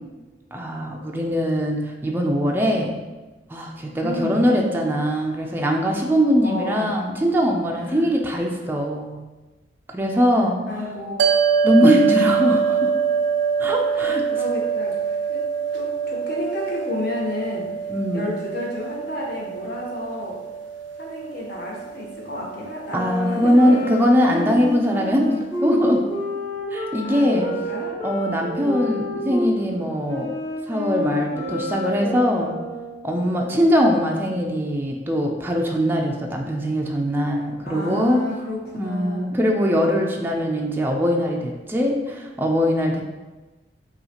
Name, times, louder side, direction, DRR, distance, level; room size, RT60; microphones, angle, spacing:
voice 1, 0.5-3.0 3.5-9.2 9.9-10.6 11.6-12.9 13.6-14.2 17.9-18.3 22.9-25.3 25.6-26.0 26.7-27.5 28.0-30.3 30.7-32.5 33.0-38.2 38.7-43.0, equal, 10° right, 0 dB, 0.4 m, -21 dB
voice 2, 4.0-4.5 6.4-6.9 7.7-8.1 10.7-11.1 13.9-15.4 15.7-17.7 18.1-20.4 21.0-23.9 27.0-28.0 28.5-29.0 33.2-33.6 37.7-39.4, left 1 dB, 60° left, -3 dB, 1.0 m, -32 dB
sound 1, 11.2-23.7, right 6 dB, 90° right, 0.3 m, -25 dB
sound 2, 22.9-29.6 30.1-33.0, left 1 dB, 20° left, 0.8 m, -29 dB
5.4 x 2.4 x 2.8 m, 1.2 s
head